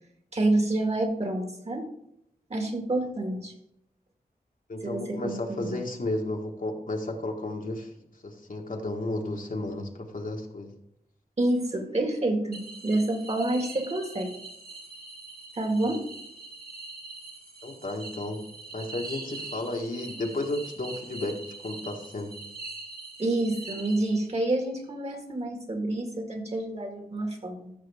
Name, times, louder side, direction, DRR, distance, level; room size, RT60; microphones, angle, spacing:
voice 1, 0.3-1.9 2.5-3.5 4.8-5.6 11.4-14.4 15.6-16.0 23.2-27.7, right 2 dB, 40° right, 4 dB, 2.0 m, -28 dB
voice 2, 4.7-7.9 8.2-10.7 17.6-18.5 18.7-22.3, left 2 dB, 55° left, 2 dB, 1.6 m, -33 dB
sound 1, 12.5-24.5, right 3 dB, 70° right, 2.6 m, -43 dB
14.0 x 6.2 x 3.6 m, 0.77 s
wide cardioid pair, 75°, 16 cm